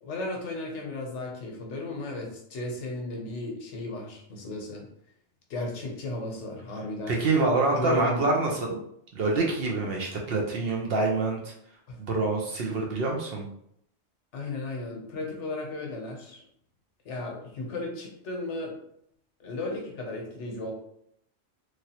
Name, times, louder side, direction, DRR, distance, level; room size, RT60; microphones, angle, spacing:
voice 1, 0.0-4.9 5.5-7.2 7.7-8.2 11.9-12.0 14.3-16.4 17.0-18.7 19.4-20.7, left 2 dB, 70° left, 1 dB, 1.0 m, -35 dB
voice 2, 7.1-8.8 9.1-11.5 12.0-13.5, right 3 dB, 60° right, 0 dB, 0.7 m, -26 dB
3.1 x 2.4 x 2.8 m, 0.72 s
omnidirectional pair, 1.3 m